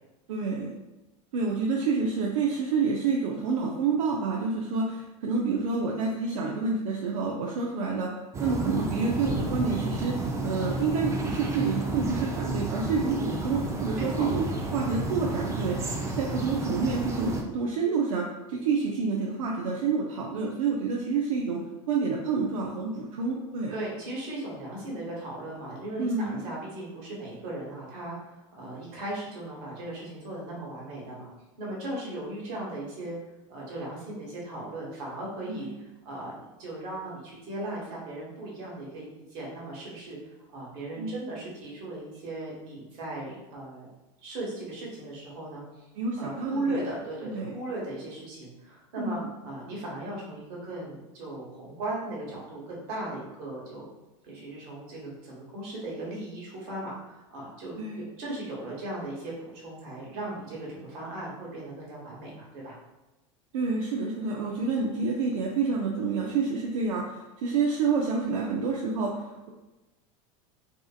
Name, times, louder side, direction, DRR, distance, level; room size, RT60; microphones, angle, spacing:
voice 1, 0.3-0.7 1.3-8.1 8.4-10.2 10.4-14.5 14.7-21.6 21.9-23.7 26.0-26.5 35.5-35.7 41.0-41.2 46.0-46.8 47.2-47.6 49.0-49.3 57.8-58.0 63.5-69.5, right 4 dB, 85° right, -1 dB, 0.4 m, -28 dB
sound 1, 8.3-17.4, right 2 dB, 15° right, 0.4 m, -31 dB
voice 2, 23.7-31.3 31.6-33.2 33.5-35.7 36.0-36.3 36.6-40.2 40.5-43.9 44.2-45.8 46.2-53.9 54.2-62.8, right 1 dB, 60° right, -4 dB, 1.2 m, -37 dB
2.6 x 2.4 x 2.4 m, 1.1 s
supercardioid pair, 105°, 17 cm